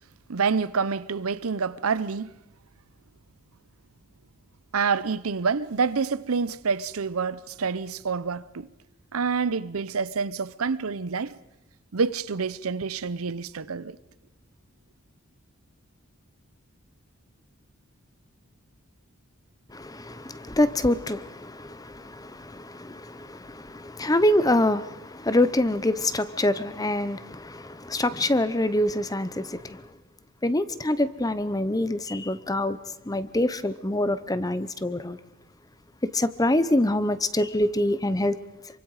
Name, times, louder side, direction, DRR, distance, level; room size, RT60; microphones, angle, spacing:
voice 1, 0.3-2.3 4.7-8.7 9.1-11.3 11.9-14.0, right 5 dB, 85° right, 0.7 m, -27 dB
voice 2, 19.7-29.9 30.4-32.8 33.1-35.2 36.0-38.4, left 1 dB, 15° left, 0.8 m, -25 dB
27.5 x 24.5 x 4.9 m
head